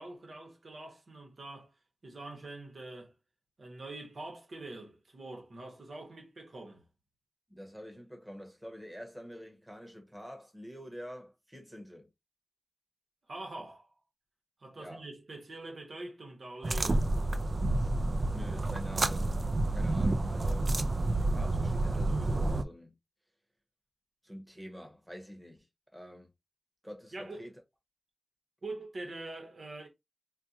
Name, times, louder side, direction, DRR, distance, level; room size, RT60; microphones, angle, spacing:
voice 1, 0.0-3.1 3.6-6.9 13.3-13.9 14.6-17.1 27.1-27.5 28.6-29.9, right 2 dB, 70° right, 1.1 m, -44 dB
voice 2, 7.5-12.1 14.8-15.1 18.2-19.3 19.7-20.8 21.2-22.9 24.2-25.7 25.9-26.3 26.8-27.5, equal, 5° right, 1.1 m, -46 dB
sound 1, 16.6-22.6, right 2 dB, 50° right, 0.3 m, -29 dB
4.4 x 2.2 x 2.7 m
wide cardioid pair, 95°, 0 cm